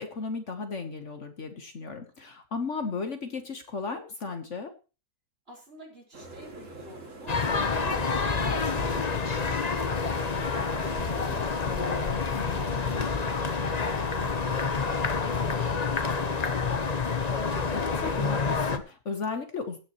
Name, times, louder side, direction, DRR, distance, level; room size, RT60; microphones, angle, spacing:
voice 1, 0.0-4.7 11.6-12.6 17.7-19.8, left 4 dB, 55° left, 7 dB, 1.5 m, -35 dB
voice 2, 5.5-11.6 12.3-17.4, right 1 dB, 40° right, -2 dB, 5.1 m, -49 dB
sound 1, 6.1-13.1, right 2 dB, 55° right, 2.8 m, -43 dB
sound 2, 7.3-18.8, left 4 dB, 30° left, 0.9 m, -28 dB
16.5 x 9.4 x 3.0 m, 0.32 s
omnidirectional pair, 1.6 m